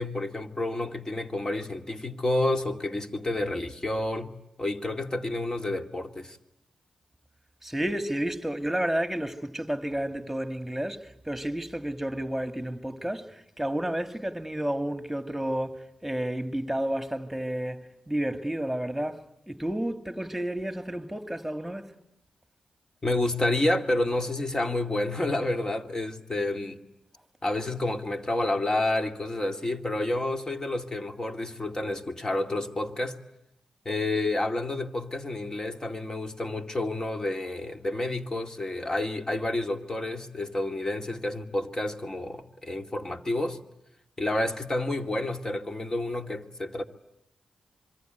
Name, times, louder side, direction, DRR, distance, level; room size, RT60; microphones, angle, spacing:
voice 1, 0.0-4.3 4.6-6.4 23.0-26.8 27.4-33.2 33.8-43.6 44.2-46.8, left 2 dB, 30° left, 2.4 m, -29 dB
voice 2, 7.6-21.9, right 1 dB, 10° right, 2.2 m, -31 dB
25.5 x 23.0 x 9.3 m
supercardioid pair, 45°, 2 cm